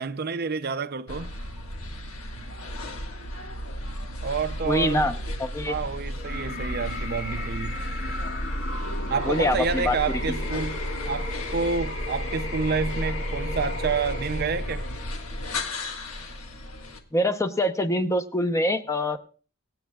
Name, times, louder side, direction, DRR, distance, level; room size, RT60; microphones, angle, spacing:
voice 1, 0.0-1.3 2.4-2.5 4.2-5.1 5.7-7.8 9.1-14.9, right 5 dB, 50° right, 0.6 m, -29 dB
sound 1, 1.1-17.0, equal, 85° left, 1.7 m, -33 dB
voice 2, 4.6-5.1 5.4-5.7 9.3-10.2 17.1-19.2, left 1 dB, 15° left, 0.7 m, -24 dB
sound 2, 6.2-15.2, left 2 dB, 60° left, 2.4 m, -36 dB
sound 3, 8.8-13.9, left 1 dB, 45° left, 6.4 m, -50 dB
24.0 x 9.3 x 2.3 m
head